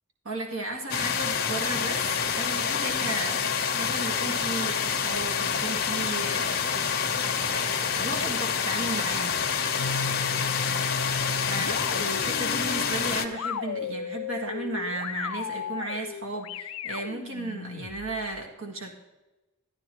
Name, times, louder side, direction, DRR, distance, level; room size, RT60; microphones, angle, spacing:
voice 1, 0.2-7.1 7.5-9.5 11.5-18.9, right 2 dB, 65° right, 1 dB, 1.8 m, -35 dB
sound 1, 0.9-13.3, left 6 dB, 45° left, 1.0 m, -27 dB
sound 2, 9.7-18.3, left 5 dB, 75° left, 0.5 m, -35 dB
13.5 x 12.5 x 3.0 m, 1.1 s
head